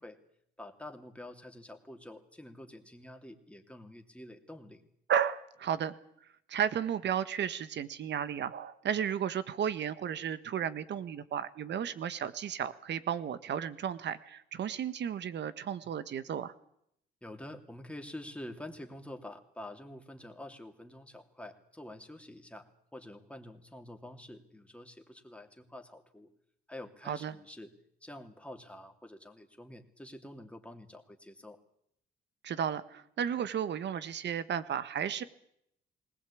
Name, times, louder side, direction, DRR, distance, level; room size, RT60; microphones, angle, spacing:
voice 1, 0.6-4.8 17.2-22.7 22.9-26.3 26.7-27.7 28.0-31.6, left 1 dB, 5° left, 4 dB, 2.8 m, -47 dB
voice 2, 5.1-5.9 6.5-16.5 27.0-27.4 32.4-35.2, right 8 dB, 65° right, 14 dB, 1.5 m, -33 dB
20.0 x 19.5 x 8.6 m, 0.74 s
cardioid pair, 90°, 20 cm